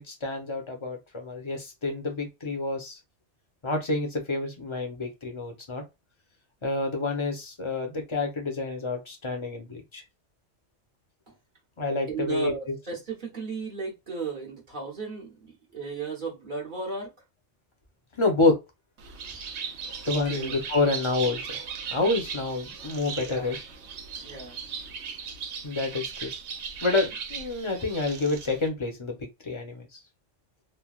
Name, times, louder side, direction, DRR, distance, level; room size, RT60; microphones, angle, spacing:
voice 1, 0.0-3.0 3.6-5.8 6.6-10.0 11.8-12.5 18.2-18.6 20.0-21.6 21.9-23.6 25.6-26.3 26.8-29.2 29.4-29.9, left 3 dB, 30° left, 0.7 m, -28 dB
voice 2, 12.1-17.1 20.0-20.6 23.2-23.6 24.1-24.7, right 4 dB, 45° right, 1.2 m, -35 dB
Bird, 19.0-28.7, right 6 dB, 75° right, 0.9 m, -37 dB
3.2 x 2.2 x 2.3 m
omnidirectional pair, 1.2 m